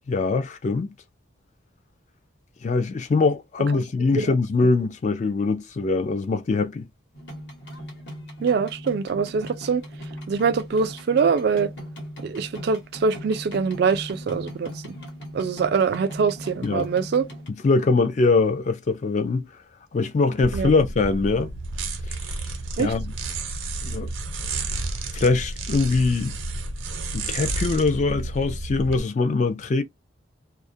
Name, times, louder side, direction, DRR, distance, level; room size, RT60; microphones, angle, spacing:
voice 1, 0.1-0.9 2.6-6.9 16.6-16.9 17.6-19.5 19.9-21.5 22.8-23.1 23.8-24.1 25.1-26.4 27.1-29.8, left 3 dB, 35° left, 0.3 m, -22 dB
sound 1, 7.1-17.5, equal, 60° left, 1.0 m, -39 dB
voice 2, 8.4-9.8 10.3-11.7 12.2-14.9 15.3-17.3 20.5-20.7 22.8-22.9, right 5 dB, 55° right, 0.3 m, -23 dB
sound 2, 20.4-29.0, right 2 dB, 85° right, 0.7 m, -31 dB
2.3 x 2.0 x 2.6 m
head